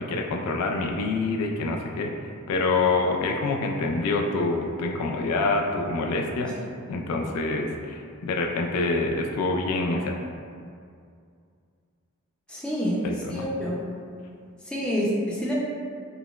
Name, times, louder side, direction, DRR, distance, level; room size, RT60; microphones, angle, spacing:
voice 1, 0.0-6.6 6.9-10.2 13.0-13.4, left 3 dB, 85° left, 6 dB, 0.3 m, -26 dB
voice 2, 6.2-6.8 12.5-13.0 13.3-13.8 14.7-15.5, equal, 5° left, -6 dB, 0.4 m, -28 dB
3.8 x 2.0 x 2.3 m, 2.3 s
head